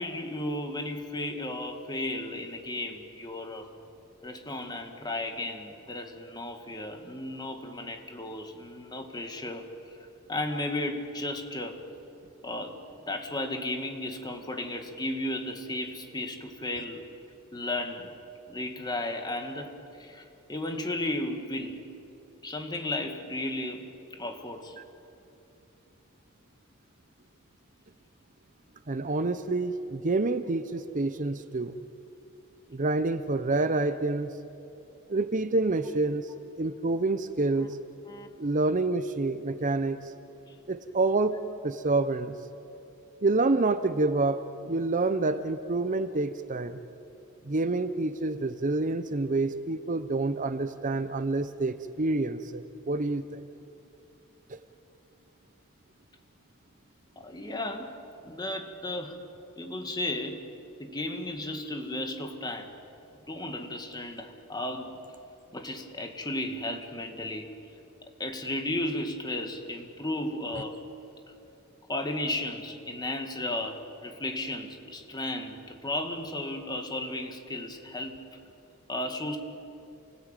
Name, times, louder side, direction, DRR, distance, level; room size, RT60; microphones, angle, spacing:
voice 1, 0.0-3.7 4.2-10.0 10.3-11.8 12.4-12.8 13.1-17.0 17.5-18.1 18.5-21.9 22.4-24.8 38.1-38.3 40.5-40.6 57.2-57.9 58.2-59.2 59.6-60.5 60.8-62.7 63.3-65.0 65.5-67.5 68.2-70.8 71.9-78.3 78.9-79.4, left 1 dB, 20° left, 5 dB, 2.1 m, -34 dB
voice 2, 28.9-31.8 32.7-34.3 35.1-36.3 36.6-37.8 38.4-40.1 40.7-41.4 41.6-42.4 43.2-46.8 47.5-53.4 54.5-54.6, right 2 dB, 35° right, 11 dB, 0.7 m, -28 dB
28.5 x 19.5 x 9.1 m, 2.8 s
head